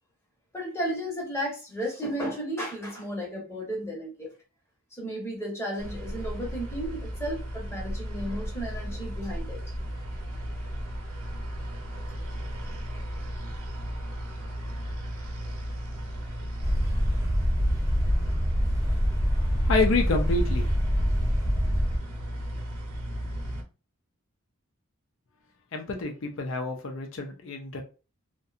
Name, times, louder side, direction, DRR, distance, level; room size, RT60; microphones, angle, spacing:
voice 1, 0.5-4.3 4.9-9.6, equal, 10° left, -2 dB, 0.8 m, -34 dB
sound 1, 5.8-23.6, equal, 75° right, 0.8 m, -35 dB
sound 2, 16.6-22.0, equal, 15° right, 0.5 m, -25 dB
voice 2, 19.1-20.7 25.7-27.8, left 3 dB, 60° left, 3 dB, 0.4 m, -29 dB
2.7 x 2.1 x 2.4 m, 0.33 s
head